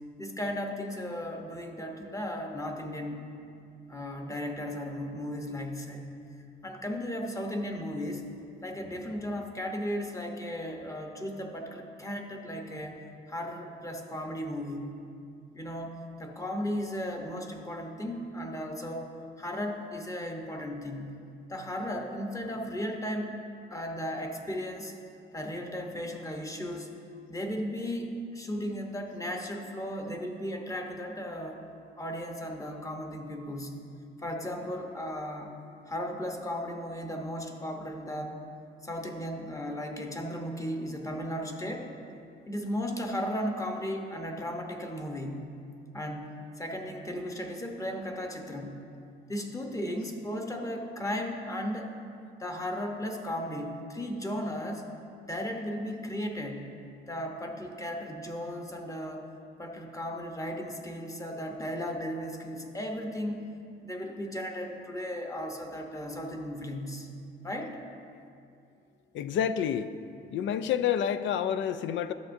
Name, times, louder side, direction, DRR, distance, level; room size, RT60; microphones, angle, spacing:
voice 1, 0.2-3.2 3.9-6.1 6.6-8.3 8.6-13.0 13.3-14.9 15.5-23.3 23.7-24.9 25.3-26.9 27.3-31.6 32.0-33.9 34.2-35.6 35.9-38.4 38.8-41.9 42.5-45.5 45.9-48.8 49.3-51.9 52.4-54.9 55.3-56.8 57.1-59.3 59.6-63.5 63.8-67.1 67.4-67.8, equal, 15° left, 3 dB, 0.9 m, -35 dB
voice 2, 69.1-69.9 70.3-72.1, left 9 dB, 70° left, 12 dB, 0.4 m, -28 dB
12.5 x 6.8 x 2.6 m, 2.6 s
cardioid pair, 90°, 20 cm